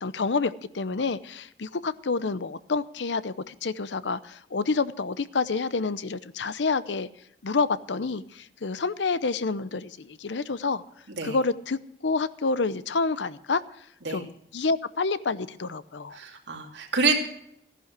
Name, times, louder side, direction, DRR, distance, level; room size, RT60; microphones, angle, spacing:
voice 1, 0.0-7.1 7.4-10.8 11.2-13.6 14.1-16.2, left 4 dB, 90° left, 15 dB, 0.7 m, -28 dB
voice 2, 16.1-17.2, right 4 dB, 85° right, 2 dB, 2.7 m, -26 dB
14.5 x 11.0 x 6.1 m, 0.74 s
head